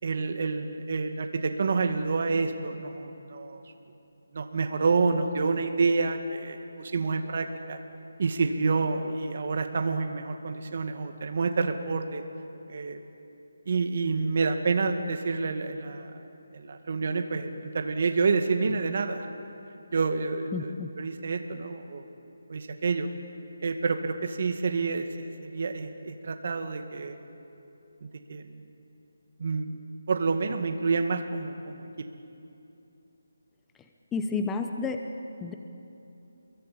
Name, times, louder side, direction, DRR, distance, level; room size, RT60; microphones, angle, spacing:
voice 1, 0.0-3.6 4.3-7.8 8.2-12.2 12.7-13.0 13.7-16.2 16.5-19.5 19.9-22.0 22.5-23.1 23.6-27.2 28.0-28.6 29.4-29.7 30.1-32.1, right 4 dB, 45° right, 6 dB, 2.1 m, -28 dB
voice 2, 20.5-20.9 34.1-35.0 35.4-35.5, left 4 dB, 5° left, 5 dB, 0.8 m, -30 dB
28.5 x 22.5 x 8.6 m, 2.8 s
hypercardioid pair, 170°, 0 cm